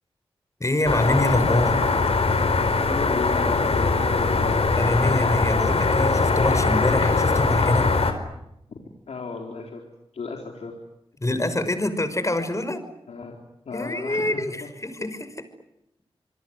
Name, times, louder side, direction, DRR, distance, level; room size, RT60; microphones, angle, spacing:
voice 1, 0.6-1.8 4.8-7.9 11.2-12.8 13.7-15.4, left 1 dB, 30° left, 10 dB, 5.8 m, -25 dB
sound 1, 0.8-8.1, left 3 dB, 70° left, 4.8 m, -21 dB
voice 2, 2.9-4.7 8.7-8.8 9.1-9.8 10.1-10.7 13.1-13.4 13.7-14.4, left 4 dB, 90° left, 2 dB, 4.0 m, -34 dB
27.5 x 22.0 x 9.7 m, 0.82 s
cardioid pair, 45°, 11 cm